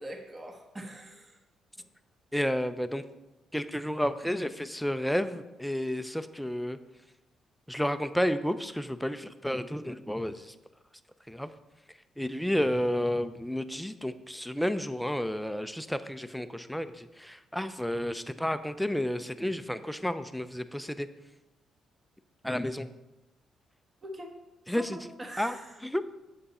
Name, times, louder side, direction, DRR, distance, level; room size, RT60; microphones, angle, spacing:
voice 1, 0.0-1.4 1.8-1.9 24.0-24.3 24.8-25.8, equal, 25° right, 3 dB, 1.2 m, -43 dB
voice 2, 2.3-3.0 3.5-6.8 7.7-10.5 11.3-11.5 12.2-21.1 22.4-22.9 24.7-25.1 25.4-25.5 25.8-26.1, equal, ahead, 10 dB, 0.5 m, -31 dB
7.9 x 6.7 x 4.2 m, 1.0 s
cardioid pair, 100°, 0 cm